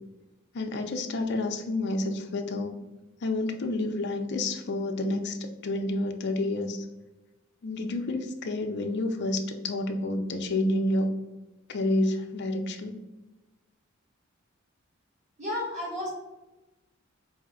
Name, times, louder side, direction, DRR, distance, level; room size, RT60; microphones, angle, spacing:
voice 1, 0.5-2.7 3.2-5.4 5.6-6.8 7.6-11.1 11.7-13.0, left 2 dB, 55° left, 5 dB, 0.4 m, -29 dB
voice 2, 15.4-16.1, left 1 dB, 35° right, -5 dB, 1.3 m, -32 dB
4.8 x 2.1 x 3.6 m, 1.1 s
head